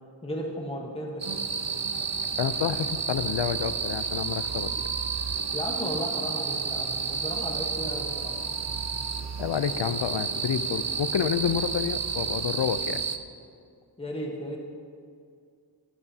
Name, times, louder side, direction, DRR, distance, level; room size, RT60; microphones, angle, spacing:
voice 1, 0.2-1.2 5.5-8.3 14.0-14.6, equal, 15° left, -1 dB, 1.1 m, -35 dB
sound 1, 1.2-13.2, right 6 dB, 40° right, 0.6 m, -31 dB
sound 2, 1.2-13.2, right 5 dB, 80° right, 0.7 m, -43 dB
voice 2, 2.4-4.7 9.4-13.0, left 8 dB, 80° left, 13 dB, 0.6 m, -29 dB
16.0 x 11.0 x 2.8 m, 2.3 s
wide cardioid pair, 105°, 42 cm